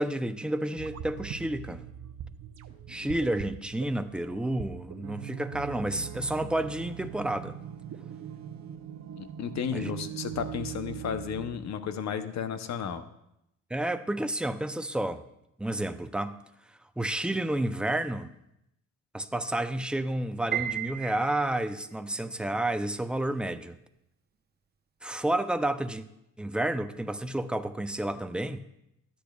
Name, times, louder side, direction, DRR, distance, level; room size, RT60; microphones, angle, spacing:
voice 1, 0.0-1.8 2.9-7.6 9.7-9.9 13.7-15.2 15.6-16.4 17.0-18.3 19.1-23.8 25.0-26.0 26.4-28.7, right 1 dB, 5° right, 9 dB, 0.5 m, -30 dB
sound 1, 0.8-11.6, right 9 dB, 60° right, 0.7 m, -41 dB
voice 2, 9.2-13.0, left 7 dB, 60° left, 10 dB, 0.8 m, -33 dB
Piano, 20.5-21.8, right 10 dB, 35° right, 0.8 m, -33 dB
13.0 x 8.6 x 2.3 m, 0.81 s
cardioid pair, 90°, 30 cm